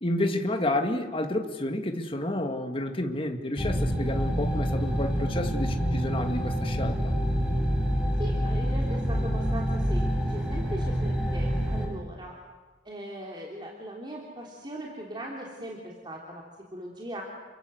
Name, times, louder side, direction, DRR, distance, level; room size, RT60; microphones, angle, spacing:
voice 1, 0.0-7.2, left 1 dB, 30° left, 5 dB, 2.3 m, -30 dB
sound 1, 3.6-11.9, equal, 5° right, 5.8 m, -27 dB
voice 2, 8.2-12.3 12.8-16.4 16.7-17.2, right 1 dB, 25° right, -1 dB, 3.4 m, -39 dB
29.5 x 23.5 x 8.1 m, 1.3 s
head